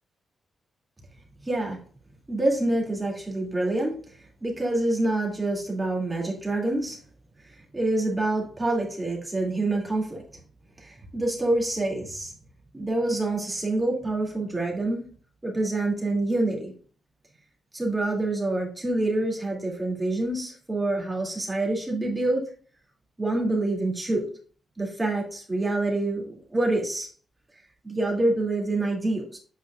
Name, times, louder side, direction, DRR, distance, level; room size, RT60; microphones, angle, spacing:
voice 1, 1.4-1.8 2.3-7.0 7.4-10.2 10.8-12.3 12.7-15.1 15.4-16.7 17.7-22.5 23.2-24.3 24.8-27.1 27.8-29.4, right 2 dB, 15° right, -2 dB, 2.6 m, -27 dB
8.4 x 5.1 x 2.5 m, 0.43 s
cardioid pair, 85°, 0 cm